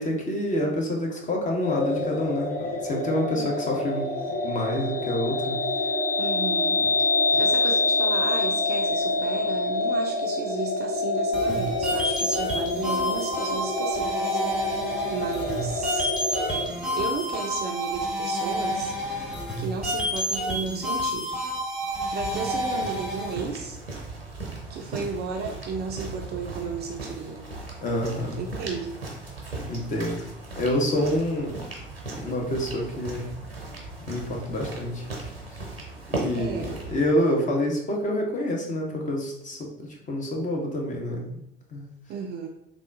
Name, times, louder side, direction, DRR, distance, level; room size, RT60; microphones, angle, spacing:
voice 1, 0.0-5.6 6.8-6.9 27.8-28.4 29.7-30.2 30.5-31.6 32.1-33.3 34.1-35.1 36.1-41.4 41.7-41.9, left 1 dB, 25° left, 0 dB, 0.7 m, -27 dB
sound 1, 1.6-16.7, left 2 dB, 80° left, 0.7 m, -26 dB
voice 2, 6.2-6.9 7.4-16.1 16.6-18.9 19.6-21.4 22.1-23.8 24.7-27.4 28.4-29.0 36.3-36.8 42.1-42.5, right 5 dB, 35° right, 2 dB, 0.4 m, -34 dB
sound 2, 11.3-23.3, equal, 5° right, 1.0 m, -29 dB
sound 3, 22.2-37.0, right 2 dB, 90° right, 0.6 m, -37 dB
3.5 x 2.3 x 2.5 m, 0.79 s
figure-of-eight pair, 60°, 29 cm